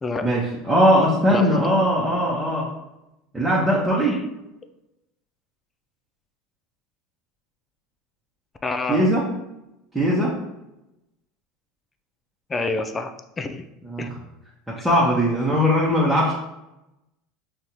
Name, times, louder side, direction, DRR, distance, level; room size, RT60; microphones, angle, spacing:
voice 1, 0.2-2.7 3.3-4.2 8.9-9.3 9.9-10.4 13.8-14.2 14.7-16.3, equal, 5° right, -7 dB, 1.0 m, -20 dB
voice 2, 8.6-9.1 12.5-13.1 13.4-13.6 14.0-14.1 14.8-14.9 15.5-15.6, left 3 dB, 20° left, 8 dB, 0.4 m, -27 dB
5.4 x 2.5 x 3.0 m, 0.92 s
hypercardioid pair, 90°, 0 cm